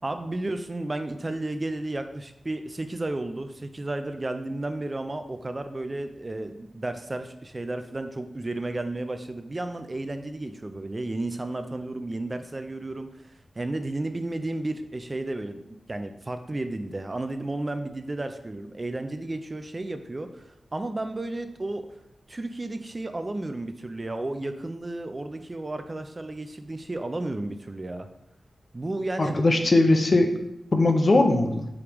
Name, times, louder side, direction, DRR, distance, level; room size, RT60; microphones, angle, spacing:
voice 1, 0.0-13.1 13.6-15.6 15.9-21.9 22.3-28.1 28.7-29.6, right 2 dB, 30° right, 8 dB, 0.4 m, -33 dB
voice 2, 29.2-30.3 30.7-31.7, left 2 dB, 50° left, 5 dB, 0.6 m, -20 dB
4.9 x 3.4 x 3.0 m, 0.81 s
cardioid pair, 65°, 0 cm